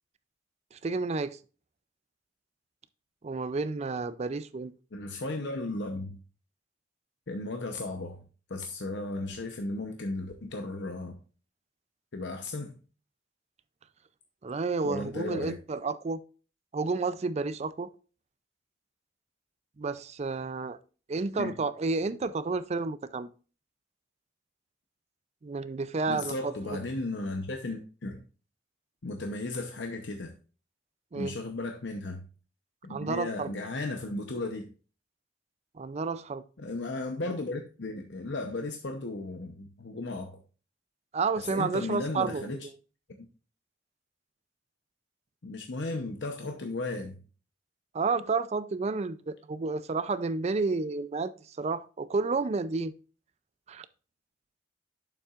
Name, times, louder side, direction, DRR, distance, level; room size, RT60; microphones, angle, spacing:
voice 1, 0.7-1.4 3.2-4.7 14.4-16.2 16.7-17.9 19.8-20.8 21.1-23.3 25.4-26.5 31.1-31.3 32.9-33.5 35.8-36.4 41.1-42.5 47.9-51.3 51.6-52.9 53.7-53.9, right 4 dB, 35° right, 0.4 m, -31 dB
voice 2, 4.9-6.2 7.3-8.2 8.5-11.1 12.1-12.7 14.8-15.6 21.4-21.5 26.1-28.2 29.0-30.3 31.1-32.2 32.8-34.7 36.6-40.4 41.4-42.7 43.2-43.3 45.4-47.2, left 2 dB, 70° left, 0.8 m, -35 dB
8.4 x 7.1 x 2.5 m
head